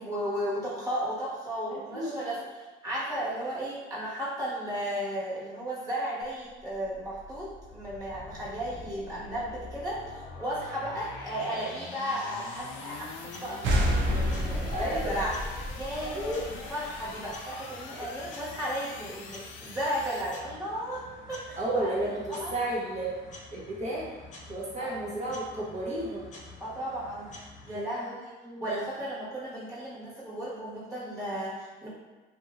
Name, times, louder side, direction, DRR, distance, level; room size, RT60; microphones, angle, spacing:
voice 1, 0.0-2.4 2.8-15.4 15.7-21.9 22.3-22.5 24.8-25.1 26.6-28.3 28.6-31.9, equal, 20° right, -9 dB, 1.3 m, -35 dB
voice 2, 1.7-2.3 14.7-15.3 16.0-16.7 17.9-18.0 21.6-23.1 23.5-24.1 24.5-26.2 27.7-28.2 28.4-28.6, right 1 dB, 35° right, -5 dB, 0.9 m, -33 dB
sound 1, 6.2-20.4, left 4 dB, 80° left, 0.4 m, -45 dB
sound 2, 12.5-27.7, left 2 dB, 35° left, 0.7 m, -49 dB
sound 3, 13.6-17.1, equal, 70° right, 0.5 m, -29 dB
2.8 x 2.7 x 2.4 m, 1.2 s
cardioid pair, 90°, 20 cm